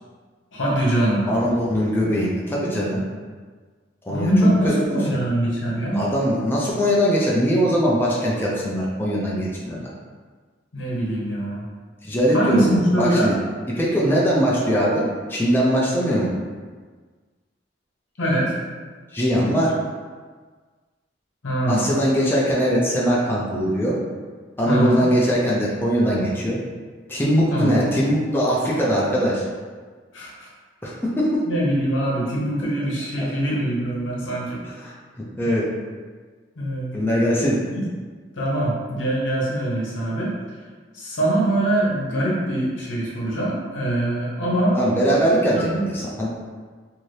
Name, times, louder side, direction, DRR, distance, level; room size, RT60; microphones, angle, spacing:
voice 1, 0.5-1.2 4.1-6.0 10.7-11.6 12.3-13.3 18.2-18.5 21.4-21.8 24.7-25.0 27.5-27.8 30.1-30.5 31.5-34.6 36.6-36.9 37.7-37.8 38.3-40.3 40.9-44.8 45.5-45.8, right 1 dB, 85° left, -4 dB, 0.9 m, -23 dB
voice 2, 1.3-3.0 4.1-5.0 5.9-9.9 12.0-13.3 13.8-16.3 19.1-19.7 21.7-24.0 24.6-26.6 27.1-29.4 30.8-31.4 33.2-33.3 34.6-35.7 36.9-37.6 44.7-46.3, equal, 10° left, -5 dB, 0.4 m, -21 dB
2.7 x 2.6 x 3.2 m, 1.5 s
head